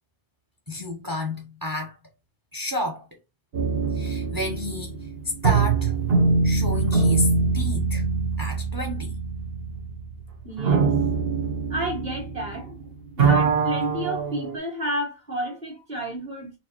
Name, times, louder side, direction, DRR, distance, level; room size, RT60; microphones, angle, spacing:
voice 1, 0.7-2.0 2.5-3.1 3.9-5.1 5.4-5.9 6.4-8.0 8.4-9.1, left 1 dB, 25° right, 0.8 m, -31 dB
sound 1, 3.5-12.8 13.0-14.6, right 4 dB, 65° right, 1.2 m, -23 dB
voice 2, 10.4-10.9 11.7-12.9 13.2-16.5, equal, 40° right, 2.1 m, -31 dB
4.5 x 2.8 x 2.9 m
omnidirectional pair, 1.1 m